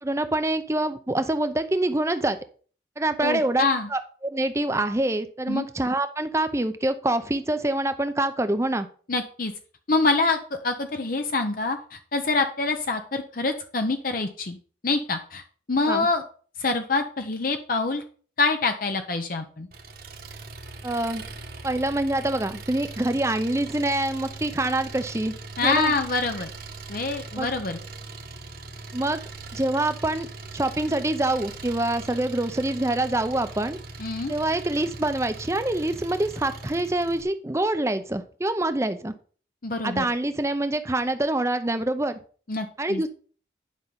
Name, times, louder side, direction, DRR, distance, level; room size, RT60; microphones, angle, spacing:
voice 1, 0.0-2.4 3.0-3.7 3.9-8.9 15.9-16.1 20.8-21.2 21.6-25.3 25.6-25.9 27.4-27.5 28.9-29.2 29.5-30.3 30.5-33.8 34.3-39.1 39.8-42.2 42.8-43.1, right 1 dB, 15° right, 10 dB, 0.7 m, -25 dB
voice 2, 3.2-3.9 5.5-5.6 9.1-9.5 9.9-14.6 14.8-15.4 15.7-16.2 16.6-18.0 18.4-19.7 25.6-26.5 26.9-27.8 34.0-34.3 39.6-40.1 42.5-43.0, left 3 dB, 50° left, 6 dB, 0.7 m, -25 dB
Engine, 19.7-37.2, right 3 dB, 50° right, 1.4 m, -40 dB
10.5 x 5.5 x 5.4 m, 0.43 s
head